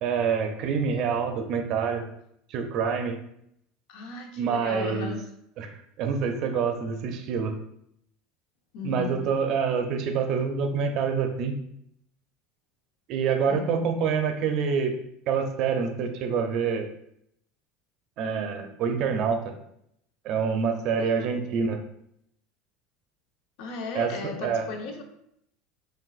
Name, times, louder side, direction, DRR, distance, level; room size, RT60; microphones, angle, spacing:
voice 1, 0.0-2.1 2.5-3.2 4.4-5.1 5.6-7.5 8.8-11.6 13.1-14.9 15.3-16.9 18.2-19.4 20.2-21.8 23.9-24.7, right 6 dB, 50° right, 5 dB, 0.6 m, -26 dB
voice 2, 3.9-5.2 8.7-9.3 13.5-13.9 20.8-21.3 23.6-25.0, left 4 dB, 70° left, 3 dB, 0.8 m, -36 dB
6.1 x 2.5 x 2.4 m, 0.73 s
supercardioid pair, 145°, 0 cm